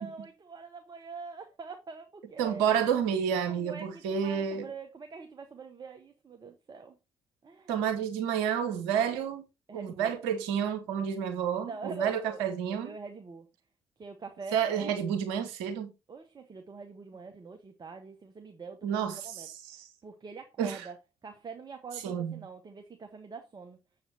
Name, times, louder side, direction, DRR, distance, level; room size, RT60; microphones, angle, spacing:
voice 1, 0.0-2.8 3.5-7.0 7.4-7.7 9.7-10.1 11.6-12.4 12.7-13.5 14.0-15.0 16.1-19.0 19.2-19.5 19.7-21.0 21.2-23.8, right 4 dB, 35° right, 1.2 m, -44 dB
voice 2, 2.4-4.7 7.7-9.5 9.7-12.9 14.5-15.9 18.8-19.9 20.6-20.9 22.0-22.4, right 8 dB, 75° right, 1.1 m, -30 dB
7.8 x 7.2 x 2.9 m
figure-of-eight pair, 45°, 12 cm